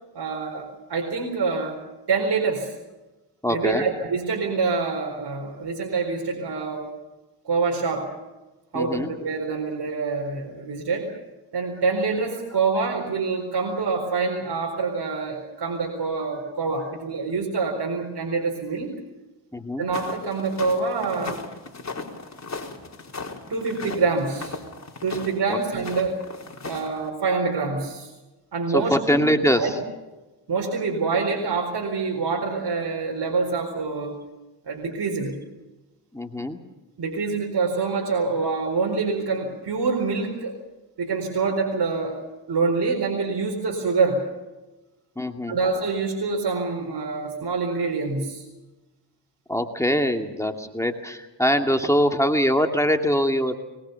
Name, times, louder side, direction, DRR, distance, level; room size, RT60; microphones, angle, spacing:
voice 1, 0.1-1.8 2.1-2.7 3.5-6.9 7.4-8.1 8.7-11.1 11.5-18.9 19.8-21.4 23.5-24.6 25.0-26.3 26.7-28.1 28.5-29.2 29.6-29.7 30.5-34.2 34.6-35.4 37.0-40.6 41.0-42.2 42.5-44.3 45.5-48.4, right 4 dB, 65° right, 1 dB, 4.6 m, -26 dB
voice 2, 3.4-3.9 8.7-9.1 19.5-19.9 25.5-25.6 28.7-29.8 36.1-36.6 45.2-45.6 49.5-53.6, equal, 5° left, 4 dB, 2.3 m, -23 dB
sound 1, 19.9-27.1, left 4 dB, 40° left, 4.2 m, -37 dB
22.5 x 21.0 x 7.0 m, 1.1 s
cardioid pair, 70°, 43 cm